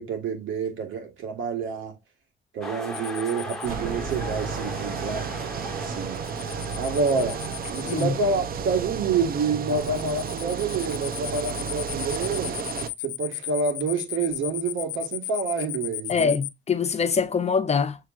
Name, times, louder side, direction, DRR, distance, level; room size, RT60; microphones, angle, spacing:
voice 1, 0.0-2.0 2.5-5.4 5.8-6.2 6.8-12.6 13.0-16.4, right 4 dB, 80° right, 1.5 m, -28 dB
sound 1, 2.6-8.9, left 1 dB, ahead, 1.3 m, -39 dB
sound 2, 2.9-3.7 6.1-8.0 9.7-16.5, left 16 dB, 85° left, 0.4 m, -35 dB
sound 3, 3.6-12.9, right 6 dB, 50° right, 0.6 m, -32 dB
voice 2, 16.1-18.0, left 6 dB, 35° left, 0.6 m, -24 dB
6.6 x 2.9 x 2.4 m
cardioid pair, 90°, 20 cm